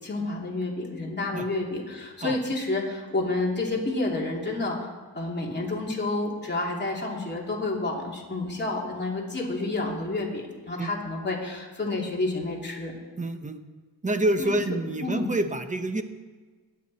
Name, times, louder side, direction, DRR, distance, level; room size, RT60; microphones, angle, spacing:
voice 1, 0.0-4.9 5.1-12.9 14.4-15.3, left 2 dB, 25° left, -2 dB, 2.9 m, -30 dB
voice 2, 13.2-13.6 14.0-16.0, right 1 dB, 20° right, 8 dB, 1.0 m, -27 dB
21.5 x 8.3 x 4.2 m, 1.4 s
wide cardioid pair, 105°, 40 cm